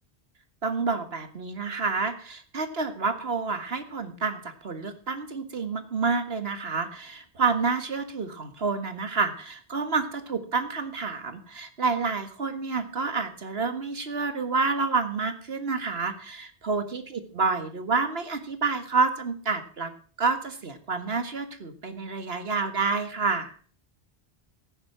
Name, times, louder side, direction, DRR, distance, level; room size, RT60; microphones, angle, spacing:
voice 1, 0.6-19.9 20.2-23.6, right 4 dB, 70° right, 9 dB, 1.9 m, -29 dB
15.0 x 10.0 x 6.0 m, 0.43 s
omnidirectional pair, 1.1 m